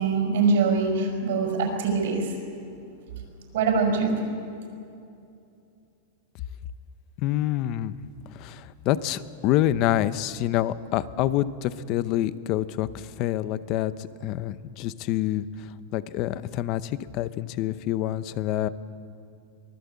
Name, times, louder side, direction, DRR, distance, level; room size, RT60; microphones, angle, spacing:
voice 1, 0.0-2.3 3.5-4.2, right 4 dB, 70° right, 0 dB, 5.9 m, -23 dB
voice 2, 7.2-7.9 8.3-13.9 14.2-15.5 15.9-18.7, left 13 dB, 35° left, 15 dB, 0.7 m, -27 dB
23.5 x 19.0 x 8.3 m, 2.6 s
supercardioid pair, 170°, 0 cm